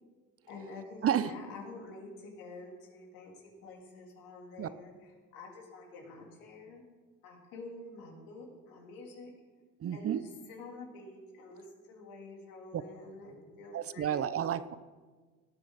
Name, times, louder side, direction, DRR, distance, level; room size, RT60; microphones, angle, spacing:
voice 1, 0.5-6.8 7.2-9.3 9.9-14.4, left 2 dB, 80° left, -1 dB, 3.3 m, -48 dB
voice 2, 1.0-1.3 4.6-4.7 9.8-10.2 12.7-12.8 13.7-14.7, right 9 dB, 45° right, 15 dB, 0.7 m, -31 dB
17.5 x 9.0 x 4.1 m, 1.4 s
supercardioid pair, 65°, 33 cm